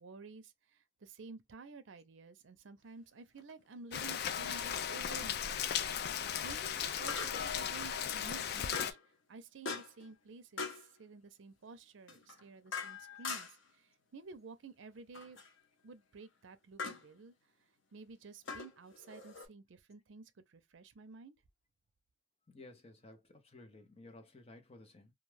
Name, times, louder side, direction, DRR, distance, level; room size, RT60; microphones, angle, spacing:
voice 1, 0.0-9.0 9.3-15.4 15.8-17.3 17.9-21.4, right 4 dB, 80° right, 0.5 m, -52 dB
sound 1, 3.4-3.5 7.1-7.6 8.7-9.1 9.6-10.1 10.6-10.9 12.1-13.7 15.1-15.5 16.8-17.1 18.4-19.5, left 4 dB, 90° left, 0.8 m, -42 dB
Rain, 3.9-8.9, left 8 dB, 55° left, 0.3 m, -36 dB
voice 2, 22.5-25.1, left 2 dB, 30° left, 0.7 m, -55 dB
2.4 x 2.2 x 3.1 m
head